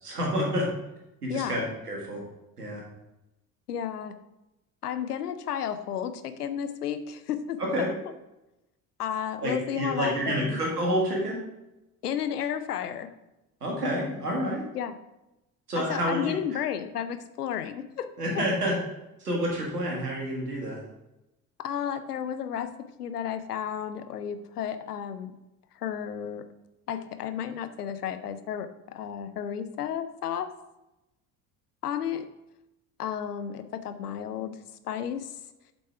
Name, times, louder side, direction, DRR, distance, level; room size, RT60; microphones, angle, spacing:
voice 1, 0.0-0.7 1.2-2.2 2.6-2.8 7.6-7.9 9.4-11.4 13.6-14.6 15.7-16.6 18.2-18.8 19.2-20.8, equal, 85° right, -2 dB, 1.7 m, -28 dB
voice 2, 1.3-1.6 3.7-4.2 4.8-7.9 9.0-10.6 12.0-13.1 14.7-14.9 15.8-18.5 21.6-25.3 25.7-26.5 26.9-30.5 31.8-32.3 33.0-34.6 34.8-35.4, left 9 dB, 80° left, 11 dB, 0.6 m, -32 dB
7.8 x 4.1 x 4.5 m, 0.95 s
figure-of-eight pair, 60°, 45 cm